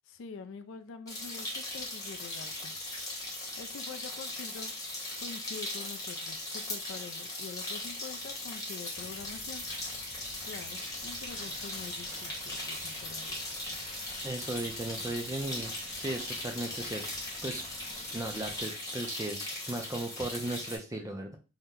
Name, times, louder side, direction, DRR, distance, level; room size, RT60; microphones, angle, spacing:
voice 1, 0.1-2.8 3.3-4.7 5.2-9.6 10.4-13.4, left 5 dB, 65° left, 8 dB, 0.3 m, -46 dB
sound 1, 1.1-20.8, left 2 dB, 15° left, 0.9 m, -39 dB
sound 2, 8.9-18.6, right 1 dB, 55° right, 0.9 m, -52 dB
voice 2, 14.2-15.7 16.0-17.0 17.4-17.6 18.1-21.3, right 1 dB, 15° right, 3 dB, 0.3 m, -36 dB
2.8 x 2.1 x 3.5 m, 0.32 s
head